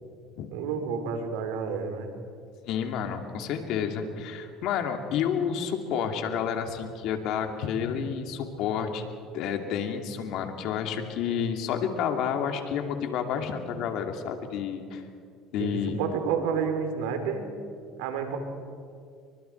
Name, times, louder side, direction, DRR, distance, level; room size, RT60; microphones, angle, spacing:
voice 1, 0.5-2.1 15.6-17.4 18.0-18.4, right 6 dB, 85° right, 6 dB, 3.3 m, -30 dB
voice 2, 2.7-9.0 9.3-15.0 15.5-16.0, left 7 dB, 65° left, 5 dB, 2.6 m, -30 dB
29.0 x 24.0 x 4.6 m, 2.3 s
supercardioid pair, 100°, 0 cm